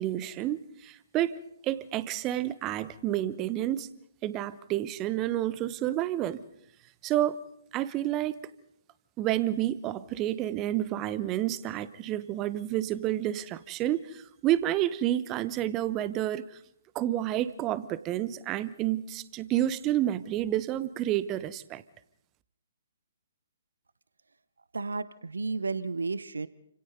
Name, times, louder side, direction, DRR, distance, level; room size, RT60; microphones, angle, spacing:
voice 1, 0.0-1.4 1.6-3.9 4.2-6.4 7.0-7.4 7.7-8.4 9.2-16.5 16.9-21.8, right 13 dB, 20° right, 1.0 m, -29 dB
voice 2, 24.7-26.5, right 3 dB, 70° right, 0.9 m, -32 dB
29.0 x 27.0 x 4.0 m
figure-of-eight pair, 130°, 0 cm